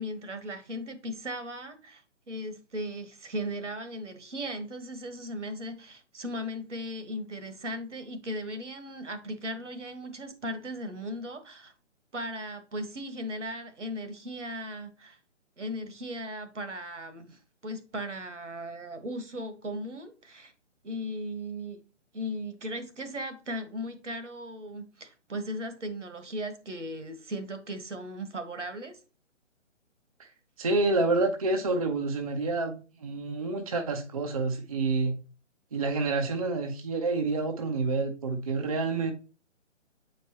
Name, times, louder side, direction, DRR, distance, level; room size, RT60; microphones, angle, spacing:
voice 1, 0.0-2.0 2.3-11.7 12.1-15.2 15.6-20.5 20.8-21.8 22.1-29.0, equal, 70° right, 1.3 m, -37 dB
voice 2, 30.6-35.2 35.7-39.1, right 3 dB, 30° right, 0.5 m, -28 dB
7.9 x 4.7 x 2.9 m
figure-of-eight pair, 140°, 37 cm